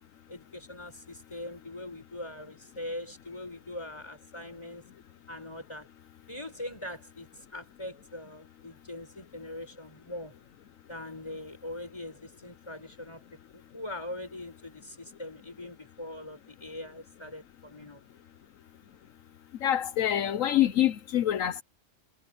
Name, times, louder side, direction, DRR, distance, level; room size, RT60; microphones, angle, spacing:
voice 1, 0.3-4.8 5.3-5.9 6.3-10.3 10.9-18.0, left 1 dB, 20° left, 5.2 m, -42 dB
voice 2, 19.6-21.6, left 12 dB, 80° left, 1.2 m, -26 dB
omnidirectional pair, 1.3 m